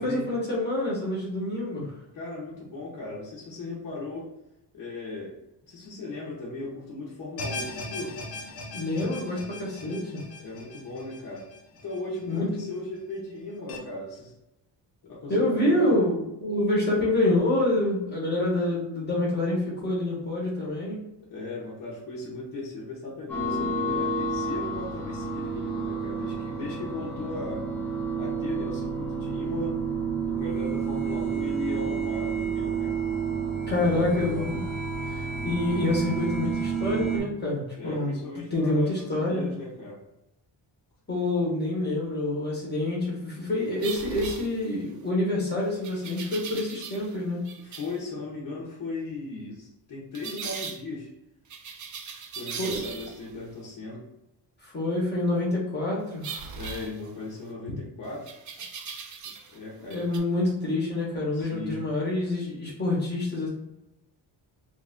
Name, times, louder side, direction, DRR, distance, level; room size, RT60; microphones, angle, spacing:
voice 1, 0.0-1.9 8.7-10.2 12.3-12.5 15.3-21.0 33.7-34.6 35.1-39.5 41.1-47.5 52.6-52.8 54.6-56.4 59.9-63.5, left 1 dB, 25° left, -6 dB, 1.1 m, -27 dB
voice 2, 2.1-4.3 4.7-5.3 5.7-8.2 10.4-11.5 11.8-14.3 15.0-16.0 21.3-27.7 28.2-29.8 30.3-32.9 33.6-34.5 37.7-40.0 47.6-51.1 52.3-54.0 56.5-58.3 59.5-60.0 61.3-61.8, left 2 dB, 45° left, -6 dB, 1.0 m, -37 dB
sound 1, 7.4-12.6 13.0-13.1 13.7-13.8, left 2 dB, 85° left, 1.1 m, -39 dB
sound 2, 23.3-37.2, right 4 dB, 5° left, 0.9 m, -30 dB
sound 3, 43.8-45.0 45.8-47.2 47.5-48.0 50.1-50.8 51.5-53.3 56.2-57.5 58.3-59.6 59.9-60.2, right 6 dB, 45° right, 0.5 m, -39 dB
3.4 x 2.5 x 3.5 m, 0.88 s
wide cardioid pair, 165°, 44 cm